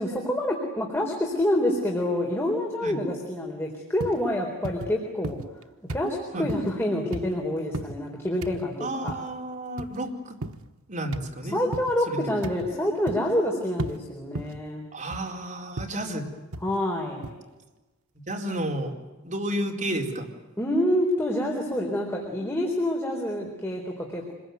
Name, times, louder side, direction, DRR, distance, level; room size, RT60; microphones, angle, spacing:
voice 1, 0.0-5.4 5.9-9.1 11.5-14.8 16.6-17.3 20.6-24.3, left 1 dB, 10° left, -1 dB, 4.0 m, -27 dB
sound 1, 4.0-4.2 4.6-4.9 5.2-5.6 5.9-6.1 6.5-6.7 7.1-7.4 7.7-8.0 8.4-8.6 9.1-9.3 9.8-10.0 10.4-10.7 11.1-11.3 11.7-11.9 12.4-12.7 13.1-13.4 13.8-14.0 14.4-14.6 15.1-15.3 15.8-16.0 16.5-16.8 17.2-17.3, right 2 dB, 80° right, 1.2 m, -34 dB
voice 2, 8.8-10.4 10.9-11.6 12.1-12.3 14.9-16.3 18.3-18.9 19.2-20.3, right 1 dB, 40° right, 1 dB, 4.3 m, -31 dB
26.5 x 21.5 x 9.4 m, 1.1 s
head